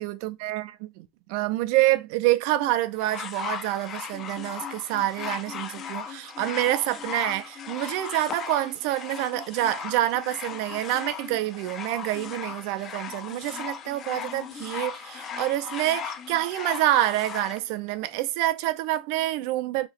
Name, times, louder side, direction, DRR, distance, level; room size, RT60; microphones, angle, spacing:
voice 1, 0.0-19.9, right 15 dB, 65° right, 0.4 m, -27 dB
sound 1, 3.0-17.6 18.5-18.6, left 7 dB, 35° left, 0.5 m, -37 dB
2.9 x 2.4 x 4.2 m
supercardioid pair, 110°, 0 cm